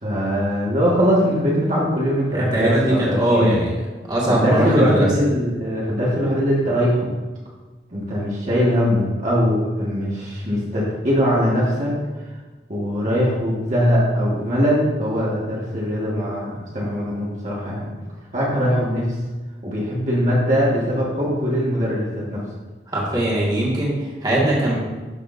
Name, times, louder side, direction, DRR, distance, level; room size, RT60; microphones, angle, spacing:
voice 1, 0.0-3.6 4.3-7.1 7.9-11.9 12.7-17.9 18.3-19.2 19.6-22.4, equal, 40° right, -6 dB, 1.7 m, -21 dB
voice 2, 2.3-3.7 4.1-5.1 22.9-24.8, right 1 dB, 25° right, -6 dB, 1.9 m, -20 dB
12.5 x 6.3 x 2.7 m, 1.3 s
head